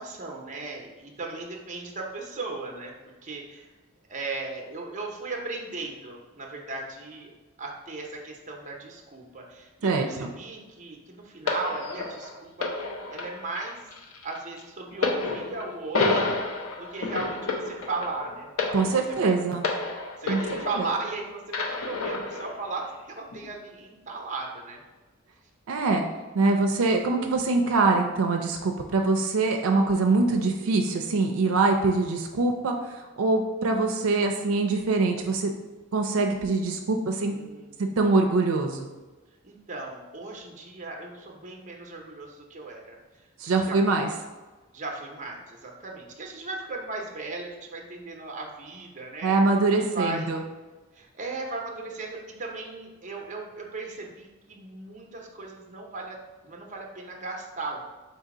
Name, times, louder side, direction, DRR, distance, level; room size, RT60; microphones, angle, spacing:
voice 1, 0.0-2.9 3.2-3.7 4.1-7.3 7.6-13.9 14.2-16.3 16.7-18.5 18.8-18.9 19.2-19.3 20.2-24.8 37.2-38.0 39.4-43.0 43.7-43.8 44.7-49.4 49.9-50.3 50.9-56.2 56.4-57.9, right 3 dB, 35° right, 0 dB, 0.7 m, -37 dB
voice 2, 9.8-10.3 18.7-19.7 20.3-20.4 20.8-20.9 25.7-26.0 26.3-35.5 35.9-37.3 38.0-38.9 43.4-44.1 49.2-50.4, right 3 dB, 85° right, 3 dB, 0.4 m, -24 dB
sound 1, 11.5-21.1 21.5-22.5 23.3-23.5, left 3 dB, 85° left, 0.7 m, -30 dB
4.0 x 2.7 x 4.8 m, 1.2 s
head